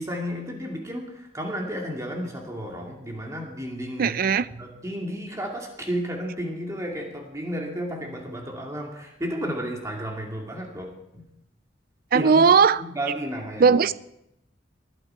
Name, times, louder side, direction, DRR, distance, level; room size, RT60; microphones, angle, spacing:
voice 1, 0.0-4.2 4.5-11.3 12.1-12.5 12.8-13.8, equal, 20° right, 2.4 m, -32 dB
voice 2, 4.0-4.5 12.1-12.8 13.6-13.9, right 5 dB, 50° right, 0.4 m, -18 dB
21.0 x 11.5 x 4.6 m
head